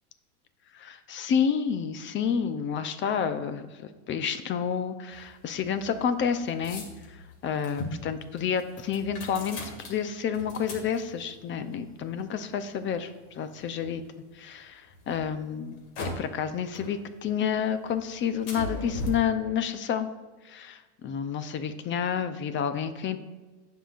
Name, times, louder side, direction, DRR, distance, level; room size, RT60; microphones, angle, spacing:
voice 1, 0.7-9.6 9.9-14.0 14.4-15.8 16.2-20.1 20.4-23.2, left 7 dB, 25° left, 11 dB, 0.6 m, -30 dB
sound 1, 5.1-14.3 14.8-16.5 16.7-17.5 17.8-19.1, left 2 dB, 55° left, 2.3 m, -41 dB
16.0 x 5.6 x 2.5 m, 1.2 s
supercardioid pair, 120°, 45 cm